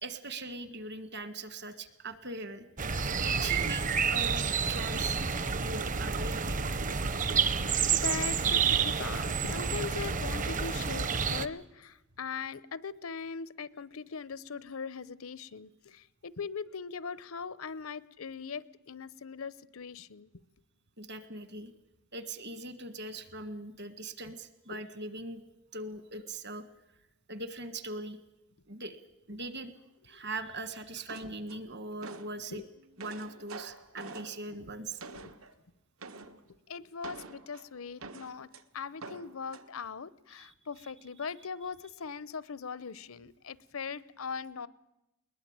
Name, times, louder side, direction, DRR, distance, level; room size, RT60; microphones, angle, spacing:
voice 1, 0.0-2.7 3.2-5.2 5.6-6.7 21.0-21.7 22.1-25.4 25.7-26.6 27.3-28.2 28.7-29.0 29.3-29.7 30.0-32.6 33.0-35.0 40.4-40.5, right 2 dB, 55° right, 12 dB, 1.7 m, -41 dB
sound 1, 2.8-11.5, right 6 dB, 40° right, 0.8 m, -29 dB
voice 2, 5.4-5.8 6.2-6.3 6.8-7.0 7.3-20.3 24.7-24.8 29.3-29.4 30.1-30.2 32.5-32.6 33.6-33.7 35.1-35.3 36.7-38.5 38.7-44.7, left 5 dB, 85° left, 19 dB, 0.8 m, -40 dB
sound 2, 31.1-32.4 32.8-35.6 36.0-36.4 37.0-38.6 39.0-39.7, right 3 dB, 85° right, 1.4 m, -46 dB
21.0 x 20.0 x 8.8 m, 0.93 s
head